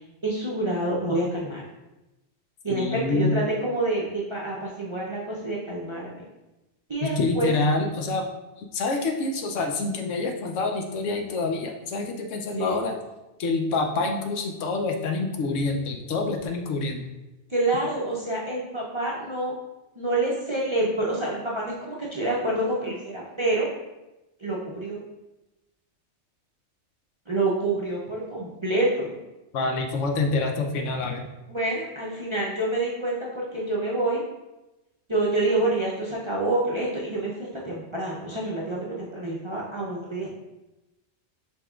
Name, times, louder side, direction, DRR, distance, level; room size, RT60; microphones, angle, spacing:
voice 1, 0.0-1.6 2.6-6.2 6.9-7.5 12.6-12.8 17.5-19.5 20.0-23.7 24.4-25.0 27.3-29.2 31.5-34.2 35.1-40.3, right 2 dB, 35° right, -5 dB, 0.5 m, -27 dB
voice 2, 2.7-3.4 7.2-8.3 8.6-12.9 13.4-17.1 29.5-31.2, left 3 dB, 90° left, 3 dB, 1.0 m, -27 dB
5.6 x 3.5 x 2.3 m, 1.0 s
omnidirectional pair, 1.2 m